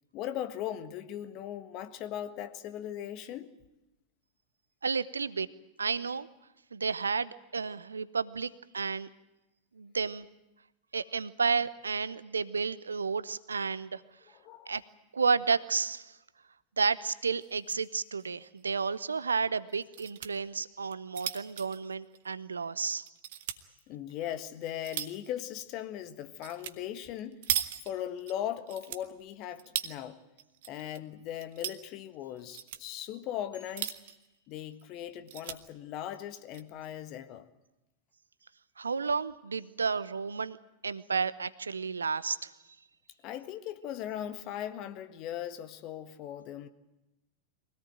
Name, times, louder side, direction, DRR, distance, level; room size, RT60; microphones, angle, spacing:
voice 1, 0.1-3.5 14.3-14.7 23.9-27.4 27.8-30.2 30.7-33.9 34.5-37.5 43.2-46.7, left 11 dB, 40° left, 9 dB, 1.6 m, -39 dB
voice 2, 4.8-5.5 5.8-6.3 6.7-9.1 9.7-10.3 10.9-14.0 14.7-14.8 15.1-16.2 16.8-23.1 38.8-40.6 40.8-42.5, right 5 dB, 75° right, 17 dB, 0.8 m, -31 dB
sound 1, 17.4-17.9 18.2-18.3 18.6-18.7 19.7-20.3 20.8-22.6 23.1-23.6 24.2-25.3 26.4-26.8 27.0-28.3 28.7-30.0 30.4-31.0 31.3-31.8 32.4-32.8 33.5-34.3 34.7-34.8 35.1-35.6 36.3-36.6, right 12 dB, 55° right, 1.2 m, -37 dB
sound 2, 33.5-35.4, left 2 dB, 80° left, 4.1 m, -62 dB
24.0 x 17.5 x 9.2 m, 0.97 s
figure-of-eight pair, 90°, 0 cm